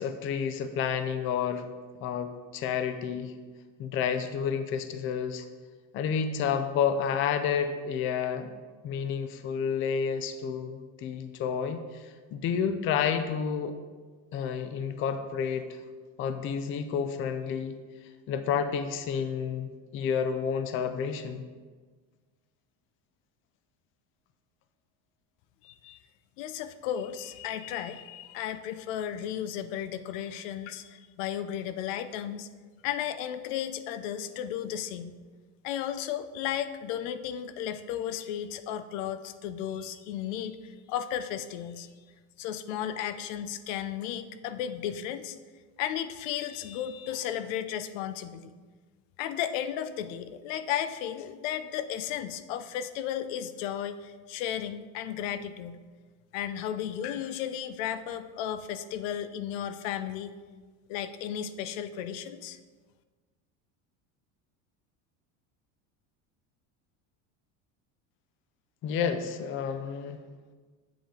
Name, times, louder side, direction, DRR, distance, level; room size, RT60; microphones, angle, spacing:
voice 1, 0.0-1.6 2.0-3.3 3.8-5.4 5.9-8.5 8.8-11.8 12.3-13.7 14.3-15.7 16.2-17.8 18.3-21.4 68.8-70.2, left 7 dB, 35° left, 9 dB, 0.5 m, -30 dB
voice 2, 25.6-26.0 26.4-32.5 32.8-35.1 35.6-41.9 42.4-45.4 45.8-48.5 49.2-55.8 56.3-60.3 60.9-62.6, left 10 dB, 80° left, 11 dB, 0.6 m, -34 dB
7.7 x 6.9 x 3.8 m, 1.4 s
cardioid pair, 150°, 38 cm